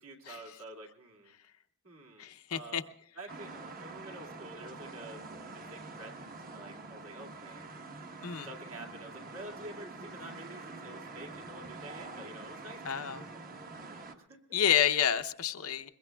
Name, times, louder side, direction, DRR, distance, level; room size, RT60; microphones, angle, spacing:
voice 1, 0.0-1.3 1.8-2.8 3.1-5.2 5.5-6.2 6.5-7.7 8.4-14.4, right 1 dB, 65° right, 1 dB, 2.3 m, -49 dB
voice 2, 2.2-2.8 8.2-8.5 12.8-13.2 14.5-15.9, left 9 dB, 70° left, 9 dB, 0.7 m, -29 dB
sound 1, 3.3-14.1, right 3 dB, 40° right, 1.1 m, -46 dB
22.5 x 21.5 x 2.3 m, 0.76 s
head